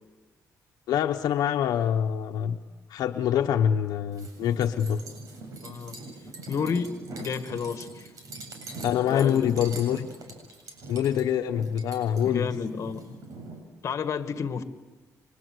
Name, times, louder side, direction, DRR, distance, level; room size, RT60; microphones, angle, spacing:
voice 1, 0.9-2.6 2.9-5.0 8.8-10.1 10.9-12.5, left 9 dB, 80° left, 4 dB, 1.1 m, -25 dB
sound 1, 4.1-13.6, right 3 dB, 65° right, 7.4 m, -42 dB
voice 2, 5.6-6.0 6.5-8.1 9.1-9.8 12.2-13.2 13.8-14.6, left 6 dB, 50° left, 9 dB, 2.0 m, -31 dB
30.0 x 24.5 x 8.0 m, 1.2 s
cardioid pair, 115°, 6 cm